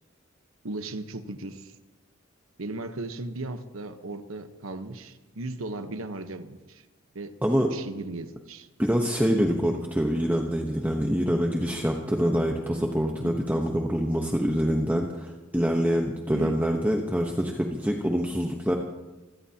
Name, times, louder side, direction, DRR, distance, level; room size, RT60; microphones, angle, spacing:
voice 1, 0.6-1.7 2.6-6.8 7.1-7.4 7.7-8.7 13.2-13.4 16.3-16.6, right 2 dB, 80° right, 9 dB, 1.1 m, -37 dB
voice 2, 8.8-18.8, equal, 10° right, 1 dB, 1.1 m, -25 dB
25.0 x 17.0 x 2.9 m, 1.1 s
head